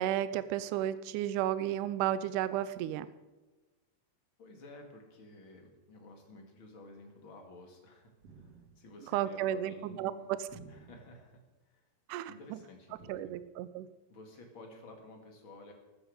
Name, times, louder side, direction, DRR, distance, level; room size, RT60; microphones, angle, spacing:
voice 1, 0.0-3.1 9.1-10.1 10.4-10.5 12.1-12.6 13.1-13.9, right 12 dB, 75° right, 14 dB, 1.9 m, -33 dB
voice 2, 4.4-10.3 10.7-11.9 12.3-13.3 14.1-15.7, left 2 dB, 40° left, 3 dB, 2.6 m, -53 dB
sound 1, 8.2-9.0 10.5-11.3 13.0-13.1, right 5 dB, 55° right, 2.1 m, -54 dB
15.0 x 13.0 x 4.9 m, 1.2 s
omnidirectional pair, 4.3 m